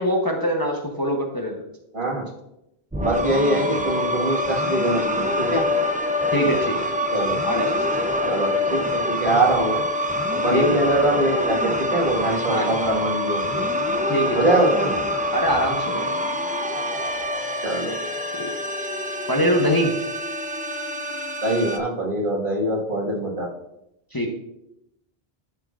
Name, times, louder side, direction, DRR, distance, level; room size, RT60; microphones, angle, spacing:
voice 1, 0.0-1.6 6.3-7.0 7.4-7.7 8.2-8.3 10.5-10.7 12.5-12.7 14.1-14.5 15.3-16.1 18.4-18.5 19.3-19.9 24.1-24.3, equal, 25° left, 1 dB, 0.8 m, -23 dB
voice 2, 1.9-2.3 3.0-5.6 7.1-7.4 8.3-9.8 10.4-13.7 14.3-15.0 17.6-17.9 21.4-23.5, right 1 dB, 55° right, -2 dB, 1.8 m, -23 dB
sound 1, 2.9-21.8, left 1 dB, 10° right, 0.3 m, -25 dB
12.5 x 5.9 x 2.4 m, 0.85 s
omnidirectional pair, 1.1 m